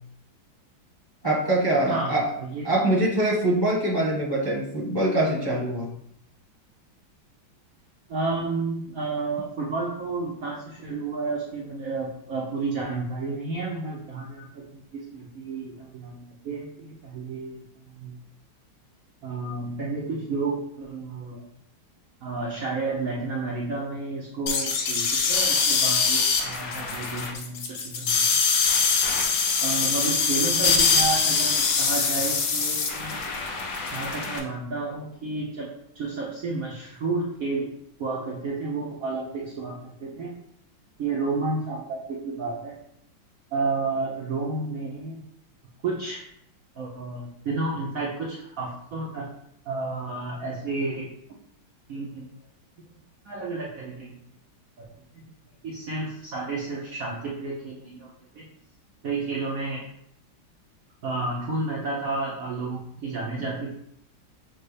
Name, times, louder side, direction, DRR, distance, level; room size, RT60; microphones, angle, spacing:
voice 1, 1.2-2.2 2.6-5.9, right 1 dB, 20° left, -6 dB, 0.7 m, -23 dB
voice 2, 1.9-2.7 8.1-18.2 19.2-21.5 22.2-28.3 29.6-33.2 33.9-37.7 38.0-40.3 41.0-42.7 43.5-45.2 45.8-46.2 46.7-49.3 49.7-51.1 51.9-52.3 53.2-54.2 55.1-55.2 55.6-58.4 59.0-59.9 61.0-63.7, right 3 dB, 70° right, -3 dB, 0.8 m, -31 dB
sound 1, 24.5-34.4, left 5 dB, 75° left, 0.7 m, -23 dB
6.5 x 2.2 x 3.2 m, 0.72 s
omnidirectional pair, 2.2 m